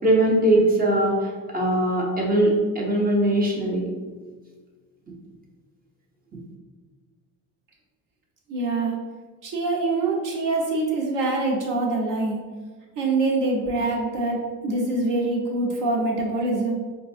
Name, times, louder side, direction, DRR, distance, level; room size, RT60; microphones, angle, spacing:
voice 1, 0.0-3.9, right 1 dB, 25° right, -2 dB, 0.8 m, -21 dB
voice 2, 8.5-8.9 9.4-12.4 13.0-16.7, right 2 dB, 55° right, -2 dB, 1.0 m, -24 dB
4.7 x 2.3 x 2.6 m, 1.4 s
cardioid pair, 120°, 38 cm